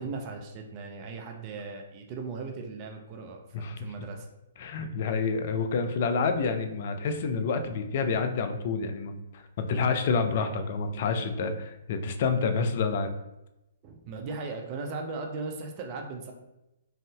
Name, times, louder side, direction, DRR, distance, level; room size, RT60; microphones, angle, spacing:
voice 1, 0.0-4.3 13.8-16.3, right 4 dB, 35° right, 3 dB, 0.4 m, -38 dB
voice 2, 4.6-13.1, left 4 dB, 45° left, 7 dB, 0.4 m, -28 dB
3.4 x 2.6 x 2.2 m, 0.92 s
figure-of-eight pair, 120°, 0 cm